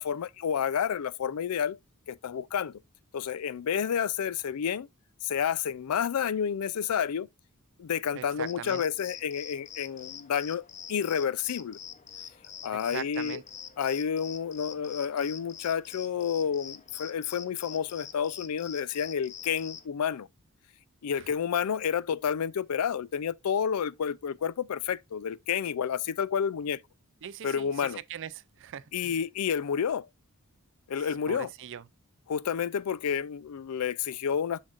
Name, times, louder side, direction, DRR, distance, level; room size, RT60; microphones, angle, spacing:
voice 1, 0.0-1.8 2.1-2.8 3.1-4.9 5.2-7.3 7.8-11.8 12.6-13.4 13.8-20.3 21.0-26.8 27.4-28.0 28.9-30.1 30.9-31.5 32.3-34.6, left 7 dB, 90° left, 0.4 m, -30 dB
voice 2, 8.2-8.8 12.7-13.4 21.2-21.3 27.2-29.2 31.0-31.9, right 9 dB, 60° right, 0.4 m, -41 dB
sound 1, 8.4-19.9, left 8 dB, 30° left, 0.6 m, -45 dB
7.2 x 6.6 x 2.4 m
head